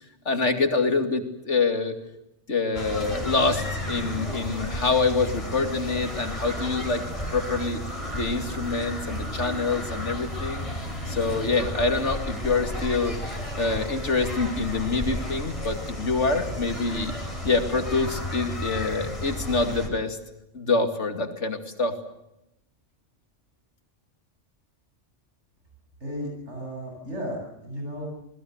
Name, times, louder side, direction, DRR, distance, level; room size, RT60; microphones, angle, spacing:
voice 1, 0.2-2.0 2.5-7.0 7.3-7.8 8.1-10.7 11.1-13.2 13.5-17.1 17.4-20.2 20.5-21.9, left 3 dB, 80° left, 6 dB, 2.9 m, -26 dB
sound 1, 2.8-19.9, left 1 dB, 25° left, 4.2 m, -33 dB
voice 2, 26.0-28.1, equal, 75° right, 0 dB, 8.5 m, -34 dB
29.0 x 20.5 x 8.2 m, 0.84 s
omnidirectional pair, 1.2 m